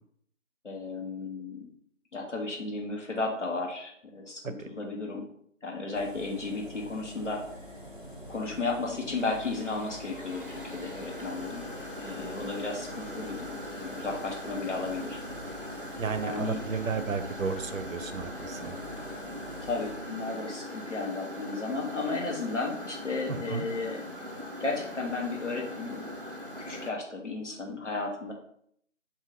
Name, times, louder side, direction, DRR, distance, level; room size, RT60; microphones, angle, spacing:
voice 1, 0.6-1.7 2.1-5.3 5.6-7.4 8.3-11.6 12.0-13.5 13.8-15.2 16.2-16.6 19.6-24.0 24.6-26.0 26.6-28.3, left 3 dB, 65° left, -1 dB, 1.2 m, -34 dB
Engine, 5.9-19.9, equal, 40° left, 0.6 m, -45 dB
sound 1, 9.2-26.9, left 1 dB, 45° right, 0.5 m, -41 dB
voice 2, 16.0-18.8 23.3-23.7, right 5 dB, 85° right, 8 dB, 0.6 m, -33 dB
3.4 x 2.7 x 3.8 m, 0.65 s
figure-of-eight pair, 170°, 39 cm